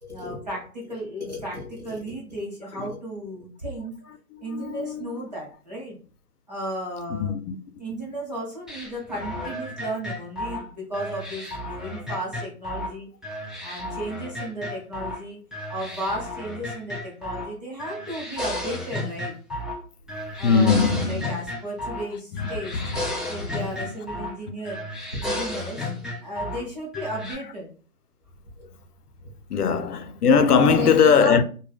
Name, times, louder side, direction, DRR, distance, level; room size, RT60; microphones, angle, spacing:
voice 1, 0.0-4.0 4.4-6.0 6.5-7.4 7.8-13.1 13.6-15.4 15.7-19.3 20.4-22.8 23.3-24.8 25.1-27.7 28.6-28.7 29.2-29.3 30.7-31.4, right 1 dB, 30° right, 0.8 m, -34 dB
voice 2, 4.3-5.1 7.2-7.6 7.9-8.0 20.4-21.3 22.3-23.1 23.4-23.5 23.8-23.9 29.5-31.4, left 6 dB, 85° left, 0.6 m, -21 dB
sound 1, 8.7-12.9 13.2-15.2 15.5-17.5 17.8-19.8 20.1-22.1 22.4-24.4 24.7-26.6 26.9-27.3, left 1 dB, ahead, 0.3 m, -33 dB
2.2 x 2.1 x 3.3 m
hypercardioid pair, 170°, 45 cm